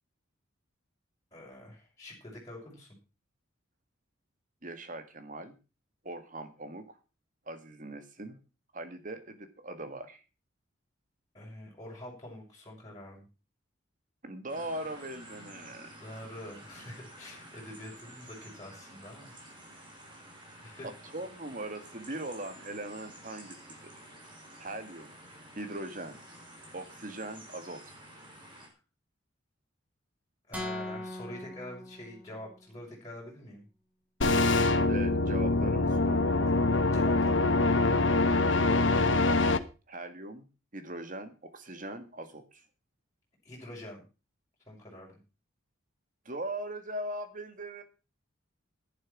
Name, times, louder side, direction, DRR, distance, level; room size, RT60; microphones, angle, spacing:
voice 1, 1.3-2.9 11.3-13.3 16.0-19.3 20.5-20.9 30.5-33.6 36.9-37.4 43.4-44.0 44.7-45.2, left 1 dB, 15° left, -5 dB, 6.7 m, -45 dB
voice 2, 4.6-5.6 6.0-7.0 7.5-8.4 8.7-10.2 14.2-15.9 20.8-23.9 24.6-25.1 25.5-26.2 26.7-27.8 34.9-36.4 39.9-40.5 40.7-42.6 46.3-47.8, right 1 dB, 40° right, 9 dB, 1.9 m, -40 dB
sound 1, 14.5-28.7, right 1 dB, 25° right, 4.6 m, -51 dB
sound 2, 30.5-32.6, left 1 dB, 5° right, 3.3 m, -40 dB
sound 3, 34.2-39.6, left 2 dB, 65° left, 1.1 m, -24 dB
11.0 x 11.0 x 6.1 m, 0.33 s
head